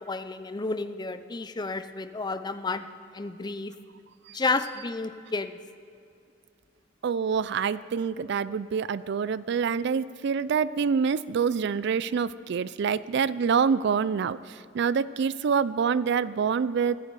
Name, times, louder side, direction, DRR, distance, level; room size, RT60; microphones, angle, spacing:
voice 1, 0.0-2.9 3.1-3.7 4.3-5.6, left 3 dB, 20° left, 11 dB, 0.5 m, -31 dB
voice 2, 7.0-17.0, right 6 dB, 65° right, 17 dB, 0.4 m, -26 dB
15.5 x 15.5 x 4.8 m, 2.4 s
head